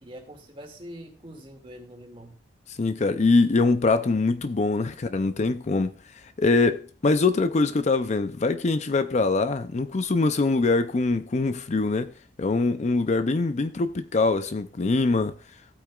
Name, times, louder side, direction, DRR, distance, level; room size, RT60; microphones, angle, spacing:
voice 1, 0.0-2.3, equal, 30° right, 2.2 m, -44 dB
voice 2, 2.7-6.0 6.4-12.1 12.4-15.4, left 3 dB, 40° left, 0.5 m, -23 dB
15.5 x 8.6 x 2.4 m
head